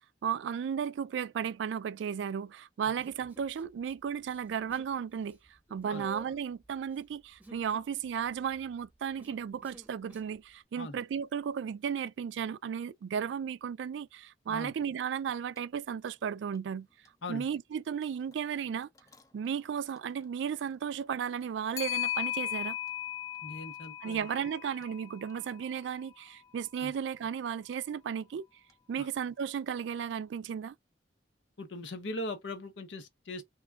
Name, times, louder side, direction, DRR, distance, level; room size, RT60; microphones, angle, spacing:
voice 1, 0.2-5.4 5.7-16.9 17.3-18.9 19.3-22.8 24.0-28.4 28.9-30.7, right 7 dB, 80° right, 0.3 m, -34 dB
Human voice, 3.0-3.9 4.2-5.0 5.2-10.4, right 2 dB, 10° right, 0.8 m, -53 dB
Clock, 15.6-15.7 16.1-16.2 19.0-19.2 21.8-26.0, left 13 dB, 20° left, 0.4 m, -37 dB
voice 2, 23.4-24.2 26.8-26.9 29.0-29.1 31.6-33.5, left 2 dB, 85° left, 0.8 m, -40 dB
2.9 x 2.2 x 3.5 m
head